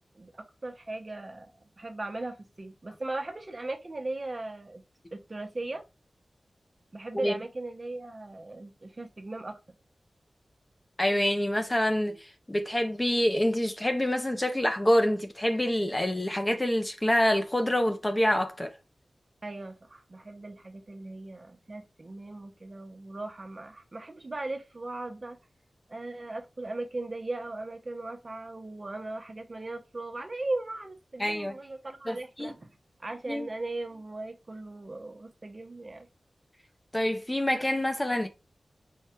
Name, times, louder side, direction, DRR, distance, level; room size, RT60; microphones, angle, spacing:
voice 1, 0.1-4.8 5.1-5.8 6.9-9.6 19.4-25.4 25.9-32.7 33.0-36.1, right 2 dB, 35° right, 0.9 m, -38 dB
voice 2, 11.0-18.7 31.2-31.6 32.1-32.5 33.3-33.5 36.9-38.3, left 1 dB, 20° left, 0.6 m, -26 dB
4.7 x 2.3 x 4.4 m
wide cardioid pair, 90°, 0 cm